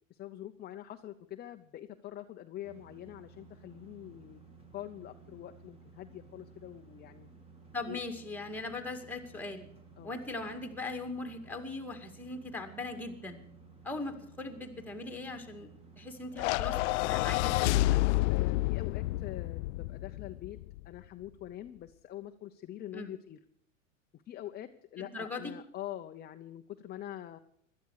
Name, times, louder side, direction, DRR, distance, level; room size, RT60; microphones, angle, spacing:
voice 1, 0.1-4.4 4.7-7.3 7.9-8.0 10.0-10.1 18.3-20.6 20.8-23.4 24.1-27.4, left 12 dB, 25° left, 6 dB, 0.8 m, -44 dB
sound 1, 2.6-18.7, right 4 dB, 15° right, 2.6 m, -56 dB
voice 2, 7.7-9.7 10.0-13.4 13.8-15.7 16.0-18.0 22.9-23.1 25.0-25.6, left 2 dB, 5° left, 5 dB, 2.1 m, -40 dB
sound 2, 16.4-20.8, left 19 dB, 65° left, 0.5 m, -29 dB
17.0 x 12.5 x 4.8 m, 0.69 s
hypercardioid pair, 120°, 39 cm